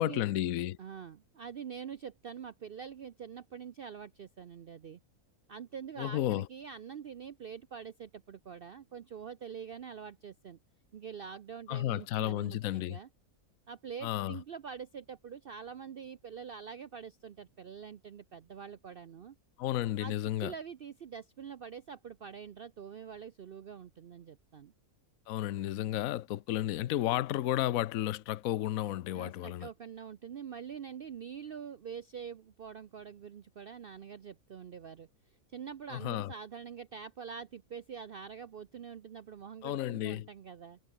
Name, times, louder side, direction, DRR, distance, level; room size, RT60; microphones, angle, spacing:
voice 1, 0.0-0.8 6.0-6.5 11.7-13.0 14.0-14.4 19.6-20.5 25.3-29.7 35.9-36.3 39.6-40.3, left 13 dB, 70° left, 1.0 m, -32 dB
voice 2, 0.8-5.0 5.5-10.6 10.9-13.1 13.7-19.4 20.0-24.7 29.1-35.1 35.5-40.8, right 7 dB, 55° right, 0.7 m, -45 dB
omnidirectional pair, 1.6 m